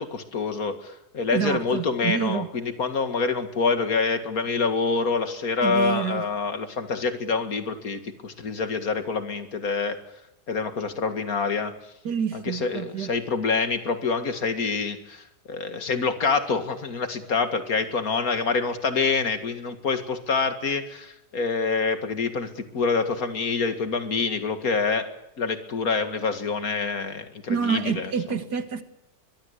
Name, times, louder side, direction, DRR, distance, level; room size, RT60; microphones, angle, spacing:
voice 1, 0.0-10.0 10.5-11.7 12.3-25.1 25.4-28.1, left 4 dB, 65° left, 2.5 m, -26 dB
voice 2, 1.3-2.5 5.6-6.3 12.0-13.1 27.5-28.8, right 7 dB, 90° right, 2.2 m, -27 dB
23.0 x 22.5 x 8.2 m
omnidirectional pair, 1.7 m